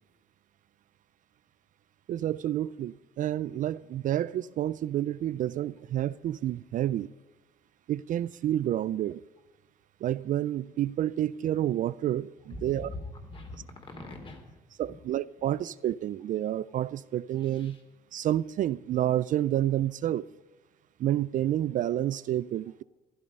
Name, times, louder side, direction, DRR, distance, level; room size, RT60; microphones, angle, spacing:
voice 1, 2.1-7.1 7.9-9.2 10.0-12.9 14.8-17.8 18.1-20.2 21.0-22.8, right 12 dB, 50° right, 0.4 m, -29 dB
voice 2, 12.5-14.6 17.4-17.8, left 2 dB, 30° left, 3.7 m, -43 dB
15.0 x 12.0 x 5.4 m
cardioid pair, 110°, 17 cm